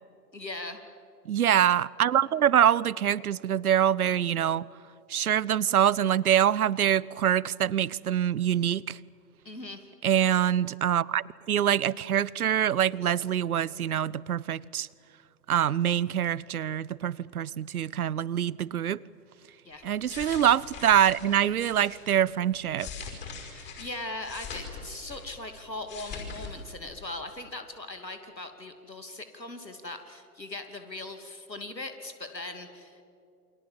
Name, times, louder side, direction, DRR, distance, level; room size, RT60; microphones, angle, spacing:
voice 1, 0.3-0.8 9.4-9.9 19.6-19.8 23.5-33.0, left 2 dB, 85° left, 2.9 m, -40 dB
voice 2, 1.3-4.7 5.1-9.0 10.0-14.9 15.5-19.0 19.8-22.9, right 10 dB, 60° right, 0.7 m, -25 dB
sound 1, 19.8-22.0 22.5-25.5 25.7-26.5 26.8-27.0, left 5 dB, 20° left, 5.5 m, -42 dB
28.5 x 24.5 x 7.6 m
figure-of-eight pair, 115°, 49 cm